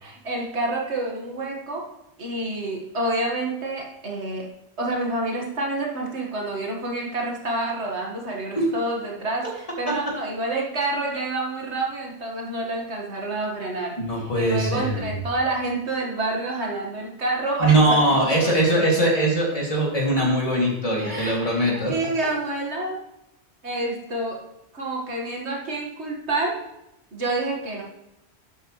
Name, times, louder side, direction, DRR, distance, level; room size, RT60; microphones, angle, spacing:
voice 1, 0.0-1.9 2.2-4.5 4.8-18.9 21.0-23.0 23.6-24.4 24.7-26.6 27.1-27.8, right 2 dB, 80° right, -1 dB, 2.2 m, -28 dB
voice 2, 14.0-15.1 17.6-21.9, right 1 dB, 35° left, -3 dB, 2.8 m, -21 dB
11.5 x 8.0 x 3.3 m, 0.87 s
omnidirectional pair, 1.1 m